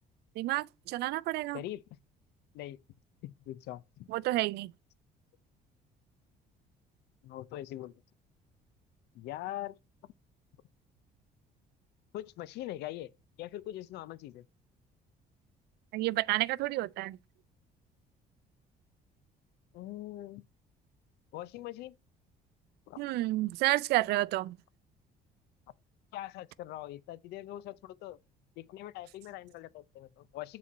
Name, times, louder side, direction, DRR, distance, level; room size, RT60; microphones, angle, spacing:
voice 1, 0.4-1.6 4.1-4.7 15.9-17.2 23.0-24.6, right 17 dB, 75° right, 0.4 m, -30 dB
voice 2, 3.2-4.1 7.2-7.9 9.1-9.8 10.0-10.1 12.1-13.1 13.4-14.4 19.7-20.4 21.3-22.0 22.9-23.0 26.1-28.2 28.6-30.6, left 14 dB, 80° left, 0.5 m, -42 dB
7.3 x 4.2 x 4.2 m
cardioid pair, 110°, 17 cm